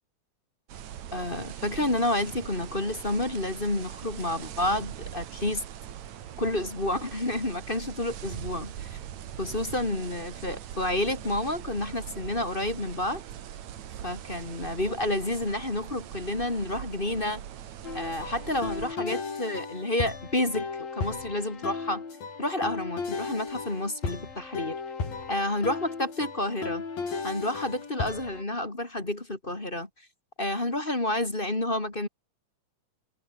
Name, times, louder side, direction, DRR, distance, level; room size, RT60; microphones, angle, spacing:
sound 1, 0.7-19.0, right 10 dB, 60° right, 2.6 m, -41 dB
voice 1, 1.1-5.6 6.4-9.0 9.4-13.2 14.0-17.4 17.9-22.0 22.4-24.8 25.3-26.8 27.2-29.9 30.4-32.1, left 1 dB, 15° left, 2.4 m, -30 dB
sound 2, 17.8-28.4, left 5 dB, 85° left, 7.7 m, -35 dB
omnidirectional pair, 4.0 m